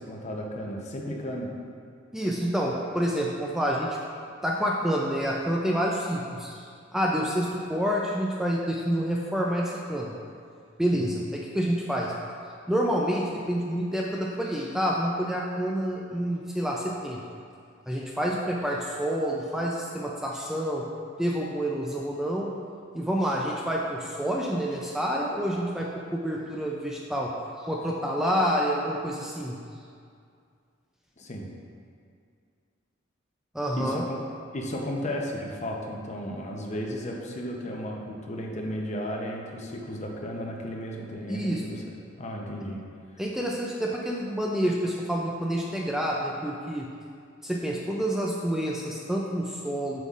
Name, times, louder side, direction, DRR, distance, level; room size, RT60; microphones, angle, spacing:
voice 1, 0.0-1.5 10.9-11.1 31.2-31.5 33.8-34.2 34.5-41.8 42.2-42.8, equal, 35° left, 0 dB, 0.7 m, -34 dB
voice 2, 2.1-4.0 4.4-6.6 6.9-10.2 10.8-12.1 12.7-17.2 17.9-20.9 21.2-22.5 22.9-27.3 27.6-29.6 33.5-34.0 41.3-41.6 43.2-46.9 47.4-50.0, equal, ahead, -3 dB, 0.3 m, -28 dB
7.6 x 5.4 x 2.4 m, 2.3 s
head